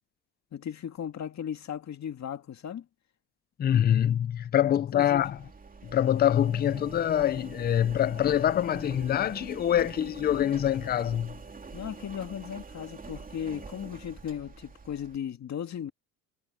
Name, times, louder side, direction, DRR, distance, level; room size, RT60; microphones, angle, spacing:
voice 1, 0.5-2.9 4.9-5.3 11.7-15.9, left 9 dB, 40° left, 2.3 m, -36 dB
voice 2, 3.6-5.4 5.8-11.3, left 10 dB, 25° left, 0.5 m, -25 dB
Engine, 5.2-15.2, right 4 dB, 20° right, 2.8 m, -45 dB
supercardioid pair, 105°, 41 cm